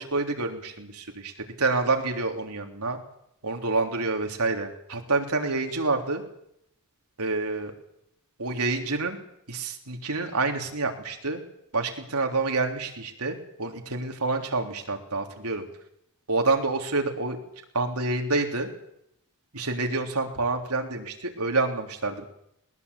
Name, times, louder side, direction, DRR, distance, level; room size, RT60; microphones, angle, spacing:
voice 1, 0.0-1.3 1.6-3.0 3.4-6.2 7.2-7.7 8.4-9.2 9.5-11.4 11.7-15.7 16.3-17.4 17.7-18.7 19.5-22.2, right 3 dB, 85° right, 3 dB, 3.5 m, -28 dB
20.5 x 20.5 x 8.4 m, 0.76 s
head